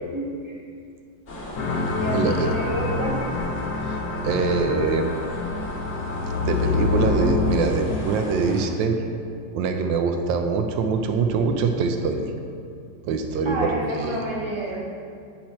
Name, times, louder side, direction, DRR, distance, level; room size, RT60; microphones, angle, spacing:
voice 1, 0.0-0.6 1.7-3.2 13.4-14.8, right 1 dB, 20° right, -5 dB, 0.8 m, -30 dB
sound 1, 1.3-8.7, left 1 dB, 45° left, 1.2 m, -38 dB
sound 2, 1.6-7.9, left 3 dB, 70° left, 1.4 m, -26 dB
voice 2, 2.1-2.5 3.8-5.2 6.3-9.0 9.5-12.3 13.1-13.7 14.0-14.2, right 4 dB, 85° right, 5 dB, 1.3 m, -24 dB
7.5 x 4.3 x 4.2 m, 2.4 s
omnidirectional pair, 2.0 m